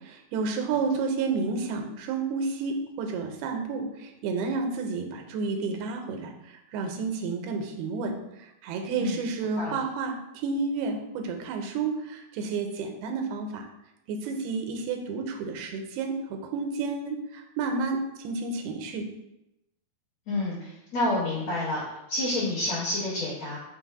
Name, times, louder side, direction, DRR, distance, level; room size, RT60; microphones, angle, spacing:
voice 1, 0.0-13.7 14.1-19.1, right 4 dB, 85° right, 3 dB, 2.5 m, -31 dB
voice 2, 20.3-21.8 22.1-23.6, left 1 dB, 65° left, -7 dB, 1.8 m, -29 dB
5.8 x 2.0 x 4.6 m, 0.89 s
omnidirectional pair, 4.3 m